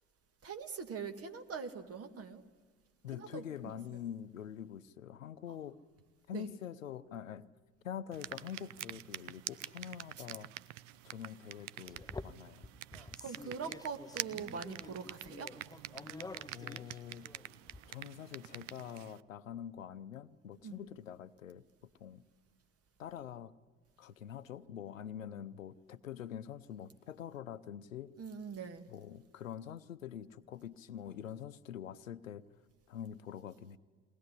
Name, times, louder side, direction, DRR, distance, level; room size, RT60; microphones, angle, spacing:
voice 1, 0.4-2.5 3.1-3.8 6.3-6.5 10.2-10.3 12.9-15.6 20.6-20.8 28.2-28.9, right 6 dB, 35° right, 2.0 m, -43 dB
voice 2, 3.0-5.8 6.3-7.5 7.8-10.5 11.0-12.7 16.5-17.3 17.9-21.6 22.0-22.2 23.0-23.5 24.0-28.1 28.9-32.5 32.9-33.8, left 9 dB, 85° left, 0.8 m, -45 dB
sound 1, 8.1-19.2, right 15 dB, 70° right, 0.7 m, -47 dB
sound 2, 11.9-17.8, left 3 dB, 10° left, 0.7 m, -49 dB
22.0 x 19.0 x 9.9 m
figure-of-eight pair, 65°, 39 cm